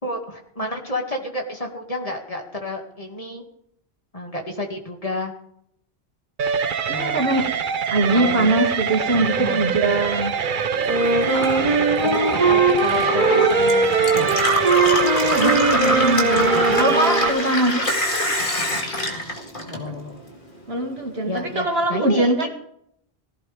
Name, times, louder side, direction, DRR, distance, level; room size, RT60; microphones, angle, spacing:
voice 1, 0.0-3.4 4.1-5.3 6.9-7.2 8.1-8.5 9.4-9.6 12.0-14.3 16.5-16.8 19.7-20.3 21.3-22.5, left 1 dB, 35° left, 2 dB, 2.3 m, -30 dB
sound 1, 6.4-17.3, right 6 dB, 55° right, 0.8 m, -24 dB
voice 2, 6.9-7.5 7.9-10.3 15.2-17.9 20.7-22.5, right 2 dB, 75° right, 2 dB, 2.5 m, -22 dB
Gurgling / Water tap faucet / Sink (filling or washing), 10.7-20.3 20.6-21.5, equal, 55° left, 2.4 m, -25 dB
Wind instrument woodwind instrument, 10.9-17.6, right 3 dB, 30° right, 3.1 m, -21 dB
18.0 x 15.5 x 3.5 m, 0.73 s
omnidirectional pair, 1.1 m